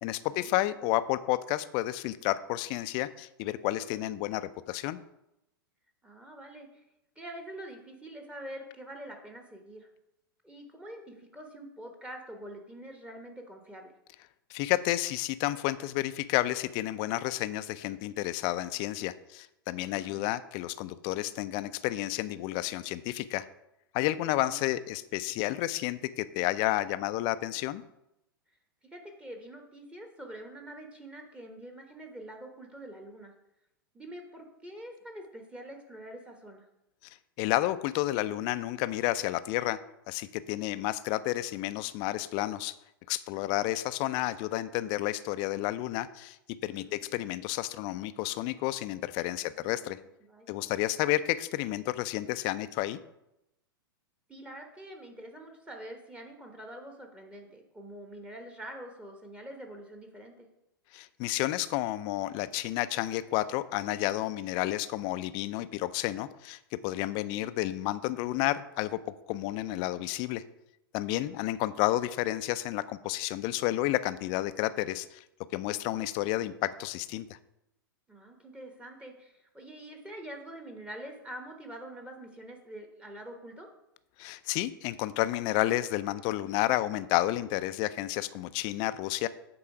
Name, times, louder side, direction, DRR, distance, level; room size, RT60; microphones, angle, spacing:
voice 1, 0.0-5.0 14.5-23.5 23.9-27.8 37.4-39.8 40.1-42.8 43.1-46.4 46.6-50.0 50.5-53.0 60.9-70.4 70.9-75.2 75.5-77.4 84.2-89.3, left 16 dB, 40° left, 14 dB, 0.4 m, -31 dB
voice 2, 6.0-6.8 7.2-9.9 10.4-13.9 19.7-20.2 24.4-24.6 28.9-33.3 33.9-36.7 43.3-43.7 46.9-47.1 49.4-49.9 50.2-50.9 54.3-60.5 67.3-67.5 71.1-71.6 78.1-83.7, right 1 dB, 10° right, 3 dB, 1.1 m, -45 dB
8.7 x 3.9 x 4.9 m, 0.86 s
figure-of-eight pair, 100°, 12 cm